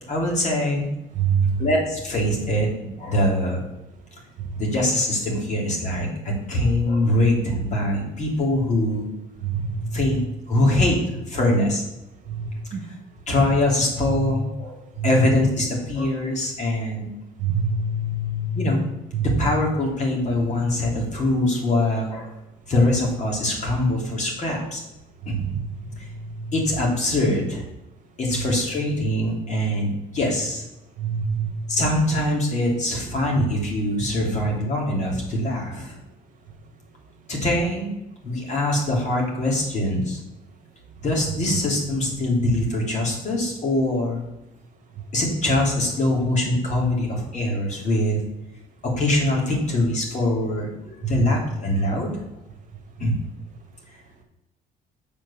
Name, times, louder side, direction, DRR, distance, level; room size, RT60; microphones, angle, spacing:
voice 1, 0.1-0.9 1.6-3.7 4.6-9.1 9.9-10.2 10.5-11.0 11.3-11.8 13.3-14.8 15.0-17.1 18.5-18.8 19.2-22.3 22.7-24.8 25.2-25.4 26.5-27.6 28.2-30.6 31.7-36.0 37.3-37.9 38.2-40.2 41.0-44.2 45.1-48.2 48.8-52.2 53.0-53.1, left 1 dB, 45° left, -1 dB, 3.3 m, -23 dB
voice 2, 1.1-1.6 9.4-10.2 12.3-12.8 14.1-14.3 15.0-15.2 17.4-18.6 19.1-19.4 25.4-26.5 28.3-28.5 31.0-31.5 34.3-34.4 51.0-51.3, right 4 dB, 50° right, 4 dB, 1.7 m, -26 dB
7.2 x 5.3 x 7.2 m, 0.92 s
cardioid pair, 110°, 17 cm